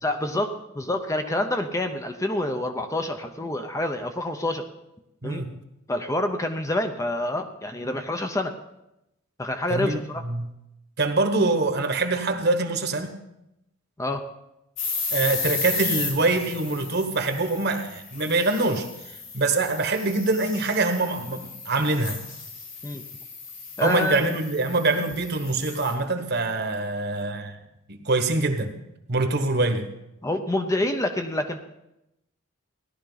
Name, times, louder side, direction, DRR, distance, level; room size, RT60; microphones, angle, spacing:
voice 1, 0.0-4.7 5.2-5.4 5.9-8.5 9.4-10.2 14.0-14.2 22.8-23.0 23.8-24.3 30.2-31.6, left 1 dB, 15° left, 6 dB, 0.6 m, -27 dB
voice 2, 5.2-5.6 9.7-10.5 11.0-13.1 15.1-18.9 19.3-22.2 23.8-27.6 27.9-28.8 29.1-29.9, right 3 dB, 55° right, 7 dB, 1.3 m, -24 dB
sound 1, 14.8-25.9, left 4 dB, 65° left, 3.5 m, -34 dB
17.0 x 11.5 x 4.0 m, 0.88 s
head